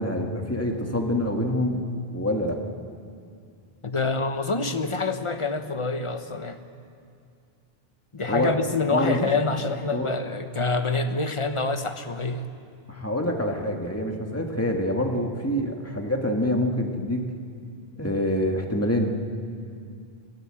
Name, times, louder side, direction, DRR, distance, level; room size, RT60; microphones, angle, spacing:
voice 1, 0.0-1.8 2.1-2.6 8.3-8.6 8.9-9.3 9.9-10.1 12.9-17.2 18.0-19.1, left 1 dB, 15° left, 1 dB, 1.9 m, -26 dB
voice 2, 3.8-6.6 8.1-12.5, left 3 dB, 30° left, 7 dB, 1.1 m, -26 dB
25.5 x 16.0 x 7.8 m, 2.3 s
omnidirectional pair, 1.0 m